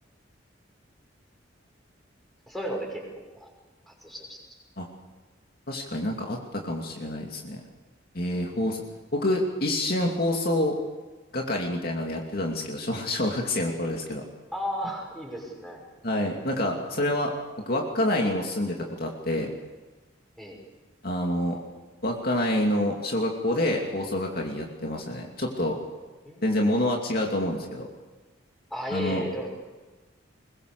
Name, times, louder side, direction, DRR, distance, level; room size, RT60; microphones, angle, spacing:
voice 1, 2.5-3.5 3.9-4.4 14.5-15.8 20.4-20.6 26.2-26.5 28.7-29.5, equal, ahead, -1 dB, 6.1 m, -34 dB
voice 2, 5.7-7.6 8.1-8.8 9.1-10.7 11.3-14.2 16.0-17.3 17.7-19.5 21.0-21.6 22.0-25.8 26.4-27.9 28.9-29.2, left 1 dB, 50° left, 1 dB, 2.7 m, -27 dB
23.0 x 21.0 x 6.8 m, 1.3 s
head